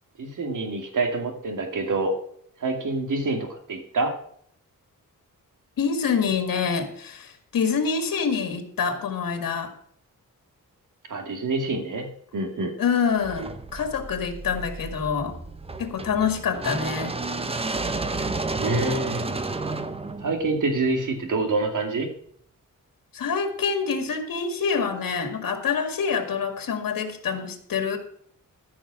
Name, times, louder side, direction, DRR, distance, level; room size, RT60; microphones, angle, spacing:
voice 1, 0.2-2.1 2.6-4.1 11.1-12.1 12.3-12.7 18.6-19.3 20.2-22.1, right 3 dB, 65° right, 3 dB, 2.5 m, -26 dB
voice 2, 5.8-9.7 12.8-15.4 15.8-17.2 23.1-28.0, left 6 dB, 90° left, 6 dB, 2.0 m, -26 dB
sound 1, 13.2-21.3, right 3 dB, 15° right, 0.8 m, -31 dB
14.5 x 6.0 x 7.5 m, 0.64 s
wide cardioid pair, 150°, 33 cm